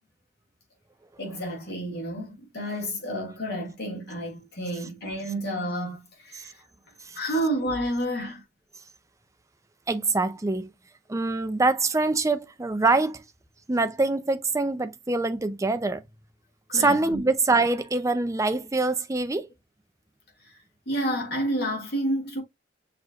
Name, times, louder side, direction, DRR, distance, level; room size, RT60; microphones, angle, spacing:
voice 1, 1.2-6.5 7.1-8.4 16.7-17.2 20.9-22.4, right 1 dB, 60° left, 2.2 m, -30 dB
voice 2, 9.9-10.7 11.1-13.2 13.7-16.0 16.7-19.5, right 3 dB, 15° right, 0.5 m, -24 dB
6.3 x 3.1 x 2.4 m
head